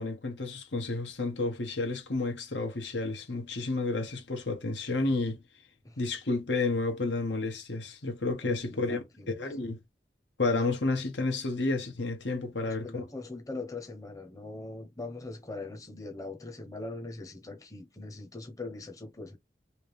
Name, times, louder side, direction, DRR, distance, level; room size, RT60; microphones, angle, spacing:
voice 1, 0.0-5.4 6.0-9.8 10.4-13.0, left 3 dB, 90° left, 1.3 m, -31 dB
voice 2, 8.4-9.3 12.5-19.4, left 2 dB, 20° left, 0.7 m, -41 dB
3.3 x 2.8 x 3.4 m
head